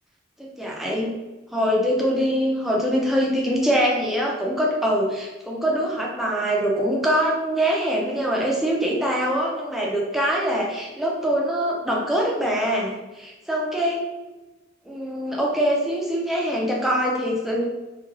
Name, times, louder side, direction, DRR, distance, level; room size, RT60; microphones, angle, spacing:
voice 1, 0.4-1.2 1.5-14.0 14.9-17.6, equal, ahead, -3 dB, 0.4 m, -23 dB
2.8 x 2.5 x 3.0 m, 1.1 s
head